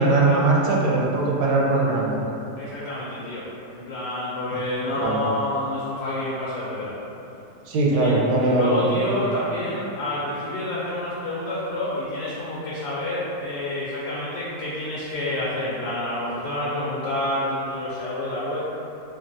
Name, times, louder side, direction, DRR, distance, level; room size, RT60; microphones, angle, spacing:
voice 1, 0.0-2.2 4.5-4.6 5.0-5.2 7.7-8.8 9.1-9.2, right 2 dB, 85° right, -3 dB, 1.2 m, -20 dB
voice 2, 2.6-3.5 3.7-6.9 8.0-18.6, left 1 dB, 90° left, -7 dB, 1.2 m, -28 dB
3.4 x 2.3 x 2.5 m, 2.8 s
omnidirectional pair, 1.8 m